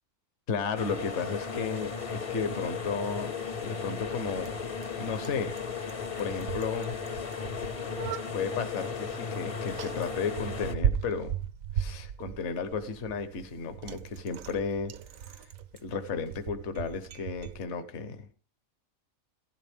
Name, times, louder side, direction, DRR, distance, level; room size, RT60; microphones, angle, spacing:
voice 1, 0.5-3.3 3.6-4.5 5.0-5.6 6.2-7.2 8.3-11.4 11.7-15.0 15.3-15.5 15.8-18.3, left 5 dB, 60° left, 10 dB, 1.2 m, -34 dB
sound 1, 0.8-10.8, left 6 dB, 35° left, 0.6 m, -36 dB
Bicycle, 1.3-17.6, right 9 dB, 75° right, 1.1 m, -38 dB
16.0 x 12.0 x 3.5 m, 0.37 s
omnidirectional pair, 1.4 m